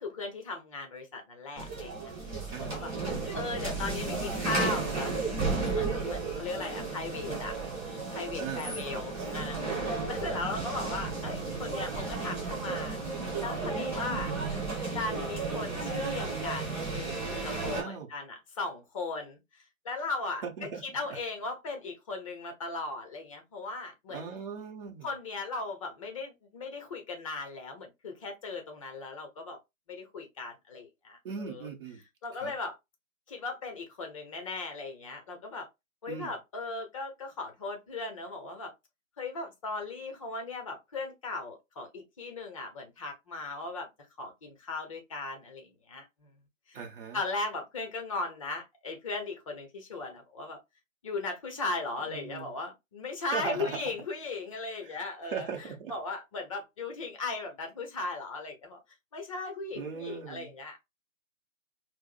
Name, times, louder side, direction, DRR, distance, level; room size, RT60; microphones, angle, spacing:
voice 1, 0.0-2.1 2.6-2.9 3.3-5.1 5.7-7.6 8.1-13.0 13.4-14.3 14.9-19.4 19.8-24.4 25.0-29.6 29.9-31.7 32.2-32.8 33.3-35.7 36.0-38.7 39.2-43.9 44.2-46.3 46.7-46.8 47.1-50.6 51.0-55.5 55.9-58.8 59.1-60.8, left 3 dB, 25° left, 0.6 m, -37 dB
sound 1, 1.6-17.8, right 3 dB, 25° right, 1.9 m, -33 dB
voice 2, 2.5-3.2 8.4-9.1 10.3-10.7 17.7-18.1 20.4-21.2 24.1-25.1 31.2-32.0 32.3-32.6 36.1-36.3 46.7-47.2 52.0-52.5 53.3-54.0 54.8-56.0 59.7-60.5, right 6 dB, 45° right, 0.8 m, -39 dB
4.5 x 2.0 x 2.4 m
figure-of-eight pair, 135°, 40 cm